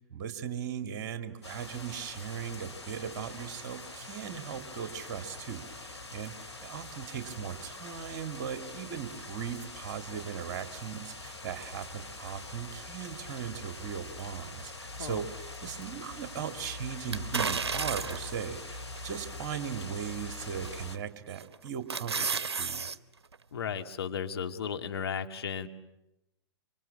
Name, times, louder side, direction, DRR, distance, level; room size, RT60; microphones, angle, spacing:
voice 1, 0.1-6.3 6.6-22.9, right 8 dB, 45° right, 9 dB, 2.3 m, -38 dB
sound 1, 1.4-21.0, left 2 dB, 85° left, 2.4 m, -44 dB
sound 2, 17.1-18.4 19.0-19.1 20.6-21.0 21.4-23.0 23.3-23.4, right 5 dB, 70° right, 1.0 m, -32 dB
voice 2, 23.5-25.7, left 7 dB, 65° left, 6 dB, 2.0 m, -35 dB
26.0 x 25.5 x 8.6 m, 0.91 s
figure-of-eight pair, 110°, 14 cm